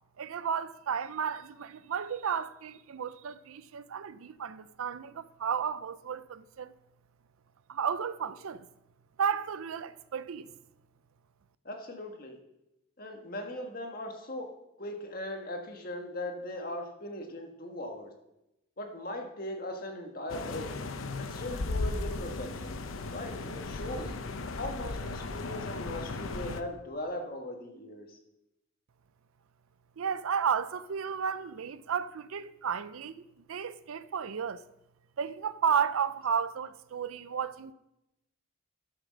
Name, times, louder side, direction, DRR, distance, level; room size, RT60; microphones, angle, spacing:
voice 1, 0.2-6.7 7.7-8.7 9.2-10.5 30.0-33.2 33.5-34.6 35.2-37.7, right 7 dB, 90° right, 0.5 m, -33 dB
voice 2, 11.6-12.4 13.0-14.5 14.8-18.1 18.8-20.7 21.2-22.7 23.1-24.1 24.6-28.2, left 1 dB, 45° left, 1.5 m, -39 dB
sound 1, 20.3-26.6, left 3 dB, 80° left, 0.8 m, -36 dB
12.5 x 6.6 x 6.2 m
head